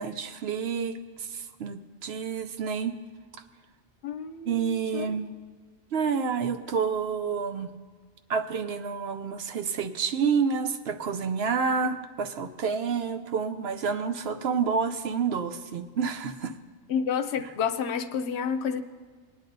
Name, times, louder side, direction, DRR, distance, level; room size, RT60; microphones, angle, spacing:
voice 1, 0.0-3.0 4.5-5.3 5.9-7.7 8.3-16.5 17.4-17.5, right 6 dB, 65° right, 8 dB, 0.8 m, -29 dB
voice 2, 4.0-5.1 16.9-18.8, left 7 dB, 70° left, 10 dB, 0.9 m, -30 dB
20.0 x 10.0 x 2.6 m, 1.5 s
omnidirectional pair, 1.2 m